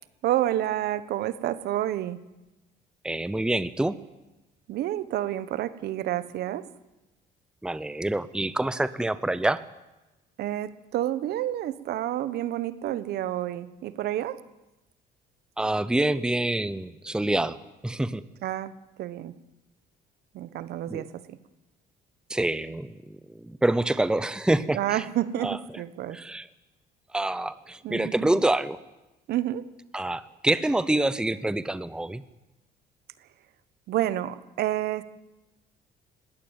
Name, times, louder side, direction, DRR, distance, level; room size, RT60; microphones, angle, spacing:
voice 1, 0.2-2.2 4.7-6.7 10.4-14.4 18.4-18.7 19.0-19.3 20.3-21.4 24.7-26.2 27.8-28.4 29.3-29.6 33.9-35.0, right 13 dB, 70° right, 15 dB, 1.2 m, -29 dB
voice 2, 3.0-4.0 7.6-9.6 15.6-17.6 17.8-18.2 20.9-21.0 22.3-25.0 25.4-25.6 26.1-26.4 27.1-28.8 29.9-32.2, right 1 dB, 5° right, 15 dB, 0.8 m, -26 dB
20.0 x 17.0 x 9.0 m, 1.0 s
cardioid pair, 110°, 17 cm